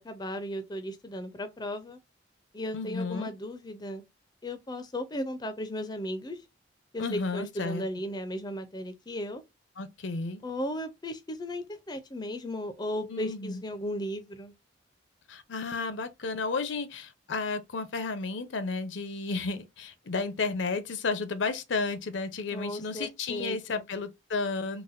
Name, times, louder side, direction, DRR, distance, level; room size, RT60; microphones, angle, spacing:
voice 1, 0.0-2.0 2.5-4.0 4.4-6.4 6.9-9.4 10.4-14.5 22.5-23.8, left 1 dB, 20° left, 0.4 m, -36 dB
voice 2, 2.7-3.3 7.0-7.8 9.8-10.4 13.1-13.6 15.3-24.8, left 4 dB, 70° left, 0.6 m, -32 dB
4.0 x 2.1 x 2.5 m
head